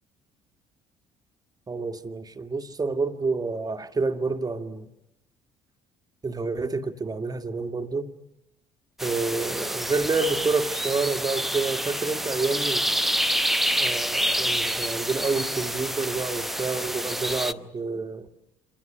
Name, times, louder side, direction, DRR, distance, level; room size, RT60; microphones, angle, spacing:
voice 1, 1.7-4.9 6.2-8.1 9.0-12.8 13.8-18.3, right 3 dB, 25° right, 1.9 m, -28 dB
sound 1, 9.0-17.5, equal, ahead, 0.9 m, -27 dB
27.5 x 27.0 x 7.0 m
figure-of-eight pair, 50°, 15 cm